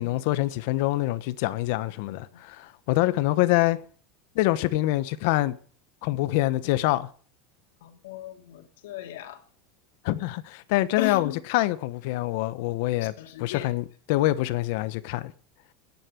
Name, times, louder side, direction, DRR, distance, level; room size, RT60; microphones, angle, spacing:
voice 1, 0.0-3.8 4.3-5.6 6.0-7.1 10.0-13.1 13.4-15.3, left 17 dB, 55° left, 1.1 m, -25 dB
voice 2, 2.0-2.4 7.8-9.4 11.0-11.4 13.0-13.7, left 13 dB, 85° left, 2.7 m, -37 dB
13.0 x 10.0 x 7.7 m
supercardioid pair, 180°, 0 cm